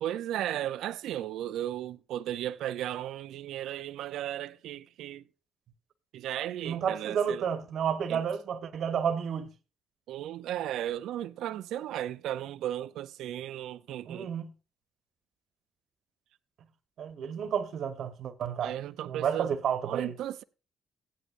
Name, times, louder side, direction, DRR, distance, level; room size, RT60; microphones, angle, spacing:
voice 1, 0.0-5.2 6.1-7.5 8.1-8.2 10.1-14.3 18.6-19.6 19.8-20.4, right 12 dB, 85° right, 0.4 m, -35 dB
voice 2, 6.6-9.5 14.1-14.5 17.0-18.8 19.1-20.1, right 8 dB, 65° right, 1.1 m, -31 dB
15.0 x 10.0 x 2.5 m
cardioid pair, 90°, 0 cm